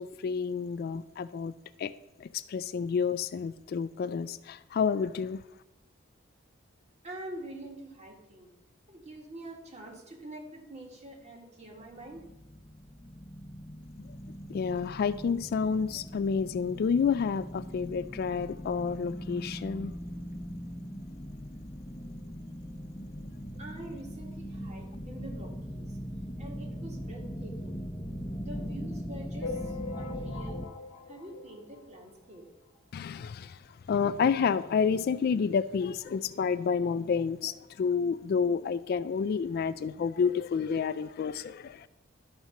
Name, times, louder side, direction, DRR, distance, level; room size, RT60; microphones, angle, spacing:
voice 1, 0.0-1.5 1.8-1.9 2.2-5.4 14.0-14.1 14.5-19.9 32.9-33.6 33.9-41.9, left 6 dB, 55° left, 14 dB, 0.3 m, -29 dB
voice 2, 7.0-8.5 8.9-12.2 23.6-26.0 26.4-27.8 28.4-30.6 31.1-32.5, right 1 dB, 35° right, 0 dB, 1.9 m, -45 dB
sound 1, 11.7-30.7, equal, 20° left, 0.7 m, -40 dB
sound 2, 29.4-32.3 32.7-32.8 33.0-33.2 33.5-33.6 34.4-34.5 35.0-35.1, left 4 dB, 75° left, 1.0 m, -41 dB
12.5 x 4.3 x 5.8 m, 0.98 s
head